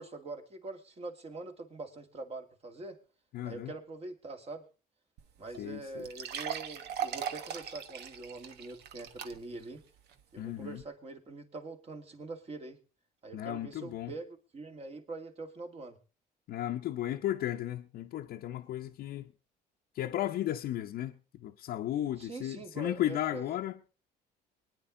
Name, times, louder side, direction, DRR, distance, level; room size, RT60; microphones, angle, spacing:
voice 1, 0.0-3.0 3.4-4.6 5.4-9.8 10.3-12.8 13.2-16.0 22.1-23.6, right 3 dB, 35° right, 2.3 m, -44 dB
voice 2, 3.3-3.7 5.6-6.1 10.4-10.8 13.3-14.1 16.5-19.3 19.9-23.8, left 12 dB, 65° left, 0.8 m, -35 dB
sound 1, 5.2-5.3 5.5-5.6 6.0-9.6 10.1-10.2 10.8-10.9, right 8 dB, 75° right, 1.3 m, -39 dB
24.5 x 9.7 x 3.8 m
cardioid pair, 110°, 17 cm